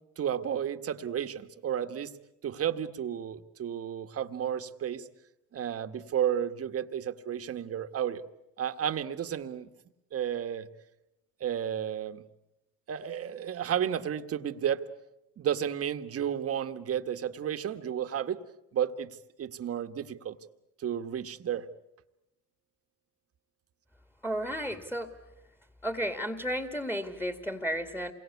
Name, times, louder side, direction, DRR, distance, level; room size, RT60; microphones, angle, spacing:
voice 1, 0.2-2.2 2.4-5.1 5.5-8.2 8.6-9.7 10.1-10.7 11.4-12.2 12.9-14.9 15.4-18.4 18.7-20.4 20.8-21.7, right 9 dB, 45° right, 9 dB, 1.5 m, -32 dB
voice 2, 24.2-25.1 25.8-28.1, equal, 5° left, 8 dB, 2.1 m, -33 dB
27.5 x 22.5 x 8.3 m, 0.89 s
supercardioid pair, 90°, 32 cm